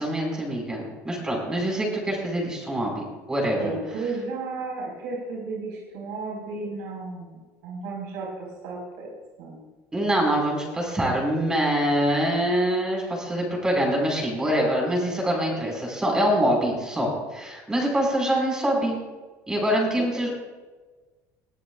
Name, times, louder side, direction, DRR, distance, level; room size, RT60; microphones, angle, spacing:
voice 1, 0.0-3.7 9.9-19.0 19.5-20.3, right 1 dB, 10° right, -1 dB, 5.2 m, -24 dB
voice 2, 3.6-9.1 9.4-9.6 20.1-20.2, right 3 dB, 80° right, -3 dB, 4.8 m, -33 dB
21.5 x 17.5 x 2.5 m, 1.3 s
cardioid pair, 155°, 7 cm